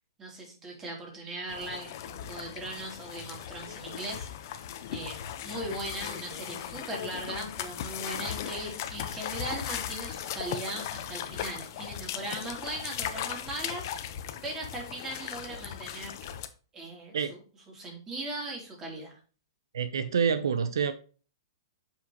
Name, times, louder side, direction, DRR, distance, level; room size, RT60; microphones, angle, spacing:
voice 1, 0.2-4.3 4.9-13.9 14.4-16.2 16.7-17.2 17.7-19.2, right 2 dB, 20° right, 3.2 m, -39 dB
sound 1, 1.5-16.5, left 10 dB, 50° left, 1.0 m, -38 dB
voice 2, 19.7-20.9, right 6 dB, 75° right, 0.7 m, -27 dB
7.7 x 5.9 x 3.0 m
hypercardioid pair, 130°, 2 cm